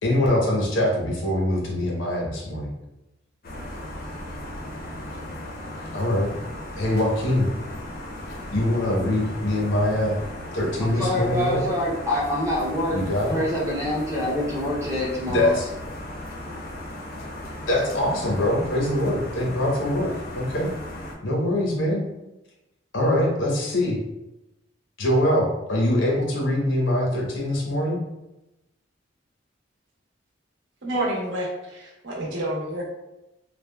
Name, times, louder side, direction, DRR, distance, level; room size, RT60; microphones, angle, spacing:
voice 1, 0.0-2.7 5.9-6.3 6.8-7.5 8.5-10.2 10.5-11.6 12.9-13.4 15.3-15.7 17.7-20.7 21.2-22.1 22.9-24.0 25.0-28.0, left 1 dB, 85° left, -2 dB, 0.8 m, -23 dB
sound 1, 3.4-21.1, left 1 dB, 50° left, 0.6 m, -36 dB
voice 2, 10.8-15.5, left 1 dB, 15° right, -5 dB, 0.5 m, -26 dB
voice 3, 30.8-32.8, right 1 dB, 70° right, -3 dB, 0.8 m, -29 dB
3.3 x 2.1 x 2.2 m, 0.95 s
head